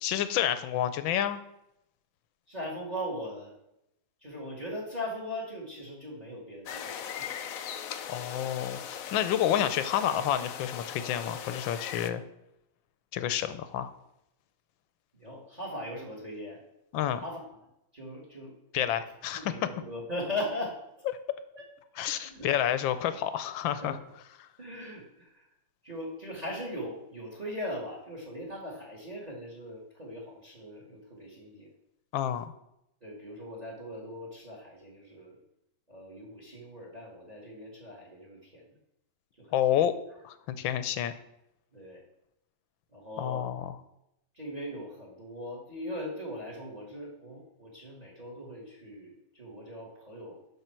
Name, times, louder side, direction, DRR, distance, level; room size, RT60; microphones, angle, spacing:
voice 1, 0.0-1.4 8.1-12.2 13.1-13.9 16.9-17.2 18.7-19.5 22.0-24.0 24.4-24.5 32.1-32.4 39.5-40.0 40.2-41.1 43.2-43.8, left 10 dB, 70° left, 12 dB, 1.4 m, -29 dB
voice 2, 2.5-3.5 4.2-7.3 15.2-16.6 17.2-17.4 17.9-18.5 19.3-20.8 22.1-22.5 23.7-24.0 24.6-25.5 25.8-31.7 33.0-35.4 35.9-38.6 39.4-39.6 40.6-40.7 41.7-42.0 42.9-43.5 44.3-50.4, left 1 dB, 20° right, -1 dB, 1.9 m, -39 dB
sound 1, 6.7-12.1, left 8 dB, 90° left, 0.7 m, -39 dB
12.5 x 5.6 x 4.5 m, 0.83 s
omnidirectional pair, 2.3 m